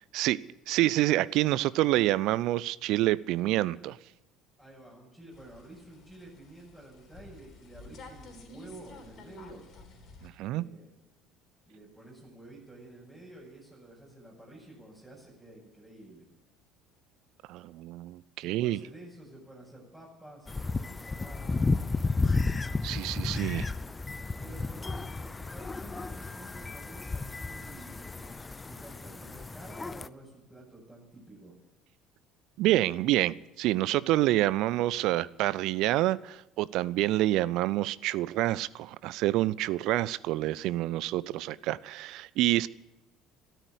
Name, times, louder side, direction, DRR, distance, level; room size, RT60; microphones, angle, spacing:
voice 1, 0.7-4.0 10.2-10.6 17.5-18.8 22.8-23.7 32.6-42.7, right 16 dB, 60° right, 20 dB, 0.5 m, -27 dB
voice 2, 4.6-9.6 10.4-10.9 11.6-16.3 18.4-21.6 24.1-31.6, right 1 dB, 10° right, -5 dB, 6.1 m, -50 dB
sound 1, 5.3-10.3, left 3 dB, 50° left, 3.7 m, -51 dB
sound 2, 20.5-30.1, left 3 dB, 20° left, 0.6 m, -33 dB
13.5 x 13.0 x 8.2 m, 0.95 s
hypercardioid pair, 60°, 0 cm